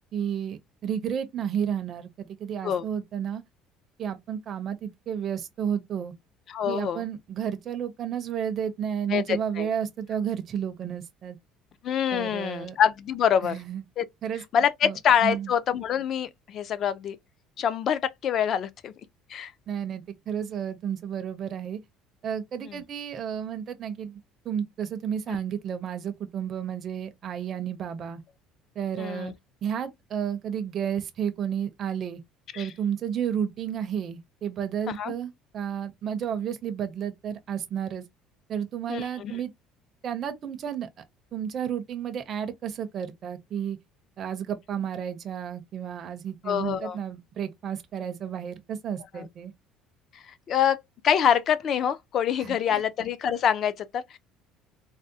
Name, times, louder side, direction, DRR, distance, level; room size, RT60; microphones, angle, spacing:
voice 1, 0.1-3.4 4.0-6.1 6.6-11.4 12.1-12.8 13.4-13.8 14.2-14.4 14.8-15.0 15.2-15.5 19.7-21.8 22.2-24.2 24.4-28.2 28.8-29.3 29.6-32.2 32.6-38.0 38.5-39.5 40.0-40.9 41.3-43.8 44.2-49.5 52.4-52.8, right 8 dB, 35° right, 0.4 m, -32 dB
voice 2, 6.5-7.0 9.1-9.7 11.8-13.6 14.0-14.1 14.5-17.2 17.6-18.9 19.3-19.5 22.6-22.8 25.3-25.4 29.0-29.3 32.5-32.7 34.9-35.1 38.9-39.3 46.5-47.0 49.2-49.3 50.1-50.8 51.0-54.2, left 8 dB, 40° left, 0.3 m, -25 dB
3.4 x 2.0 x 2.6 m
cardioid pair, 160°, 0 cm